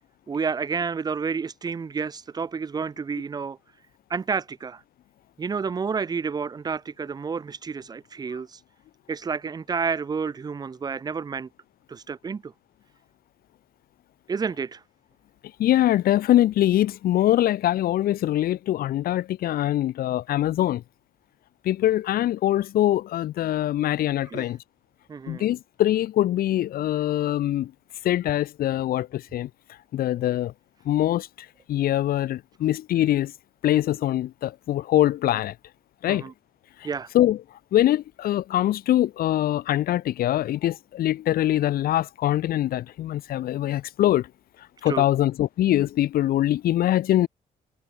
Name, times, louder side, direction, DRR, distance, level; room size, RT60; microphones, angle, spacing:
voice 1, 0.3-3.6 4.1-4.8 5.4-8.6 9.1-11.5 11.9-12.5 14.3-14.8 24.2-24.5 25.1-25.5 36.1-36.3 36.8-37.1 44.8-45.0, right 5 dB, 25° right, 0.9 m, -30 dB
voice 2, 15.6-20.8 21.6-24.6 25.3-27.7 28.0-29.5 29.9-30.5 30.9-31.3 31.7-33.3 33.6-35.5 36.0-36.2 37.1-37.4 37.7-44.3 44.8-47.3, left 13 dB, 80° left, 0.9 m, -23 dB
wide cardioid pair, 170°, 15 cm